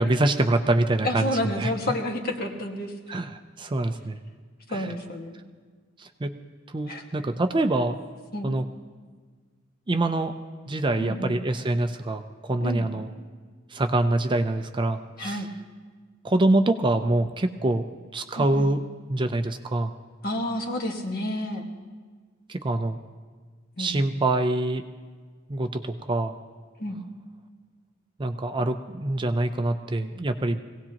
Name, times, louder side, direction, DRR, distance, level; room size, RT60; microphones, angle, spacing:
voice 1, 0.0-1.3 1.6-1.7 3.1-4.2 4.7-4.9 6.0-6.4 6.7-8.0 8.4-8.6 9.9-10.4 10.7-13.1 13.7-15.4 16.2-17.9 18.1-18.8 19.1-19.9 22.5-23.0 23.8-24.8 25.5-26.3 28.2-30.6, right 2 dB, 25° right, 8 dB, 0.5 m, -25 dB
voice 2, 1.0-2.9 4.7-5.3 6.9-7.0 8.3-8.6 11.0-11.4 12.6-12.9 15.2-15.5 18.4-18.7 20.2-21.7 23.8-23.9 26.8-27.0, left 1 dB, 50° left, 2 dB, 1.6 m, -30 dB
22.5 x 17.0 x 2.9 m, 1.5 s
head